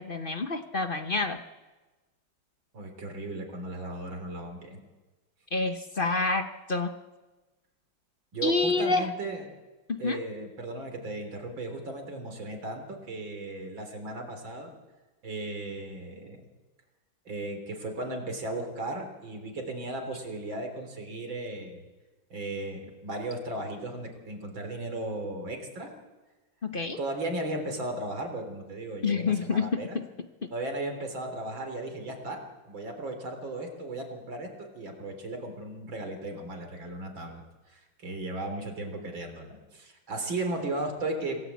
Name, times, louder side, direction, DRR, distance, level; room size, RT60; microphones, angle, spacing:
voice 1, 0.0-1.4 5.5-6.9 8.4-9.1 9.9-10.2 26.6-27.0 29.0-30.0 30.4-30.5, left 3 dB, 40° left, 7 dB, 0.8 m, -28 dB
voice 2, 2.7-4.8 8.3-9.5 10.0-14.7 15.2-16.4 17.3-21.9 22.3-25.9 27.0-30.0 30.5-32.4 32.7-37.4 37.7-41.4, right 2 dB, 65° right, 4 dB, 4.4 m, -36 dB
26.5 x 17.5 x 8.4 m, 1.2 s
omnidirectional pair, 2.3 m